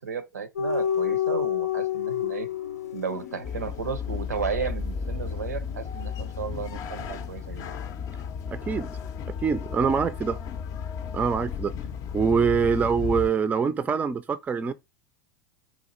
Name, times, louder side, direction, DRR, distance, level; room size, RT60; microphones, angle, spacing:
voice 1, 0.0-2.5 2.9-7.7, right 6 dB, 85° right, 0.6 m, -33 dB
sound 1, 0.6-7.3 7.6-7.9, left 9 dB, 80° left, 0.6 m, -31 dB
sound 2, 3.4-13.3, left 6 dB, 40° left, 0.5 m, -34 dB
voice 2, 8.5-9.0 9.3-10.4 11.1-11.7 12.1-14.7, right 6 dB, 15° right, 0.4 m, -24 dB
4.1 x 2.3 x 4.2 m
hypercardioid pair, 90°, 9 cm